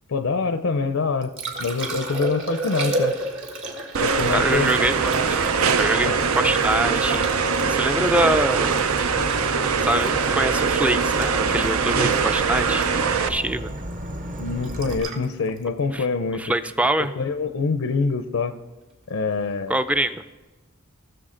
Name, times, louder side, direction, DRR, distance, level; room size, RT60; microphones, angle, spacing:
voice 1, 0.1-1.3 1.6-3.1 4.0-4.7 6.1-6.2 14.4-16.5 17.0-18.5 19.1-19.8, left 4 dB, 80° left, 9 dB, 0.6 m, -25 dB
Liquid, 1.0-17.1 19.9-20.0, right 1 dB, 65° right, 1.6 m, -34 dB
sound 1, 3.9-13.3, right 6 dB, 80° right, 0.6 m, -22 dB
Insect / Frog, 4.2-15.0, right 1 dB, 40° right, 0.9 m, -33 dB
voice 2, 4.3-5.4 5.8-8.9 9.8-12.9 13.3-13.7 15.9-16.0 16.4-17.1 19.7-20.2, right 1 dB, 5° right, 11 dB, 0.4 m, -24 dB
19.0 x 6.8 x 3.8 m, 1.1 s
head